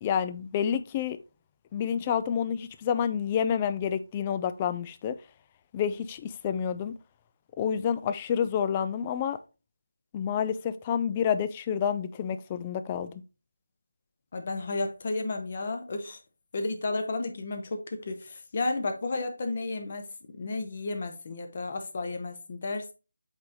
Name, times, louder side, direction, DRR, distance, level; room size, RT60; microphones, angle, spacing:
voice 1, 0.0-1.2 1.7-5.2 5.7-6.9 7.6-9.4 10.1-13.2, left 8 dB, 20° left, 0.4 m, -29 dB
voice 2, 14.3-16.2 16.5-20.1 20.4-22.9, left 3 dB, 35° left, 1.0 m, -32 dB
8.0 x 3.5 x 3.9 m
figure-of-eight pair, 160°, 0 cm